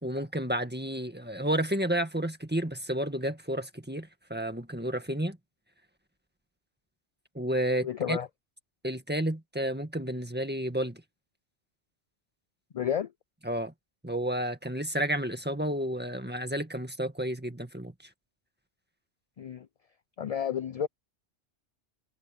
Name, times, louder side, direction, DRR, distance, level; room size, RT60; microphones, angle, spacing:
voice 1, 0.0-5.4 7.4-8.2 8.8-11.0 13.5-13.7 14.0-17.9, right 1 dB, 10° right, 1.8 m, -31 dB
voice 2, 7.8-8.3 12.7-13.1 19.4-19.7 20.2-20.9, left 9 dB, 55° left, 0.4 m, -31 dB
omnidirectional pair, 1.2 m